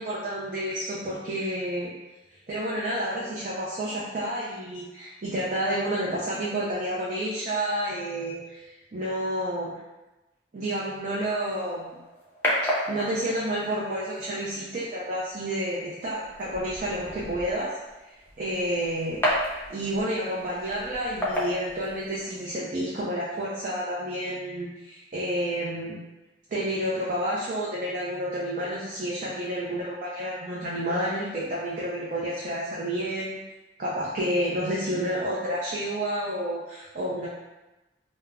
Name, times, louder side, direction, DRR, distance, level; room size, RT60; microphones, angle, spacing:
voice 1, 0.0-1.9 2.5-8.6 8.9-9.7 10.5-11.9 12.9-17.7 18.4-25.9 26.5-33.4 33.8-37.3, right 1 dB, 50° right, -7 dB, 0.5 m, -30 dB
sound 1, 11.5-22.5, equal, 10° left, 0.5 m, -33 dB
2.3 x 2.0 x 3.3 m, 1.0 s
head